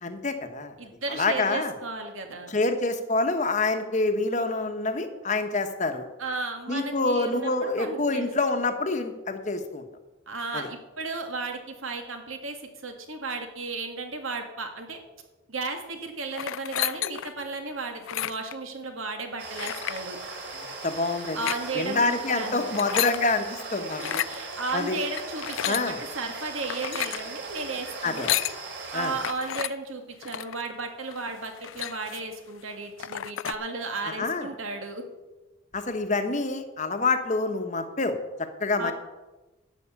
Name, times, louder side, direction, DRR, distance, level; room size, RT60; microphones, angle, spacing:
voice 1, 0.0-0.7 1.1-1.7 2.5-6.1 6.7-9.8 10.5-10.7 20.5-21.4 21.7-24.2 24.7-25.0 25.7-26.0 28.0-28.3 28.9-29.1 34.0-34.5 35.7-38.2 38.6-38.9, left 3 dB, 35° left, 7 dB, 1.1 m, -27 dB
voice 2, 0.8-2.5 6.2-8.3 10.3-15.0 15.5-20.2 21.3-22.0 22.3-22.7 24.0-28.3 28.9-35.0 38.8-38.9, right 3 dB, 80° right, 5 dB, 2.0 m, -34 dB
sound 1, 16.3-17.4 18.0-18.6 19.6-20.0 21.2-21.6 22.6-23.2 23.9-24.4 25.2-25.9 26.6-27.2 28.0-28.6 29.2-29.7 30.2-30.6 31.1-31.2 31.4-32.3 32.7-32.8 33.0-33.6, left 13 dB, 70° left, 0.3 m, -31 dB
sound 2, 19.4-29.3, right 3 dB, 55° right, 3.0 m, -39 dB
12.0 x 6.4 x 8.7 m, 1.1 s
head